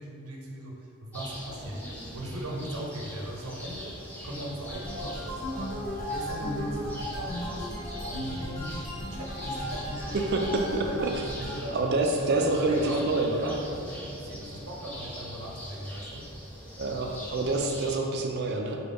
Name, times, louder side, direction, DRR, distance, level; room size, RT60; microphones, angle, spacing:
voice 1, 0.0-5.8 6.1-7.7 8.0-10.2 10.8-16.3, right 1 dB, 80° right, -1 dB, 0.7 m, -38 dB
sound 1, 1.1-18.0, equal, 5° left, 0.5 m, -42 dB
sound 2, 4.7-11.6, equal, 30° left, 0.9 m, -36 dB
voice 2, 10.3-13.5 16.8-18.8, right 2 dB, 50° right, 2 dB, 0.4 m, -27 dB
5.2 x 2.3 x 3.4 m, 2.5 s
head